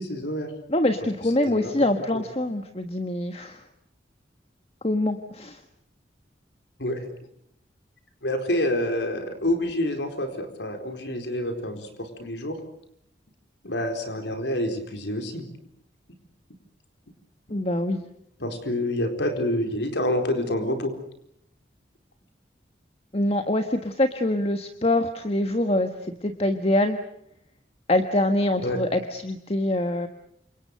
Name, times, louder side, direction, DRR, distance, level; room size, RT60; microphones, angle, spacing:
voice 1, 0.0-0.5 1.5-1.7 2.1-2.2 6.8-7.0 8.2-12.6 13.6-15.5 18.4-20.9 28.6-28.8, left 1 dB, 90° left, 5 dB, 4.3 m, -27 dB
voice 2, 0.7-3.6 4.8-5.6 17.5-18.0 23.1-25.9 26.2-27.0 27.9-30.1, left 1 dB, 35° left, 7 dB, 1.5 m, -24 dB
29.0 x 27.0 x 6.6 m, 0.73 s
head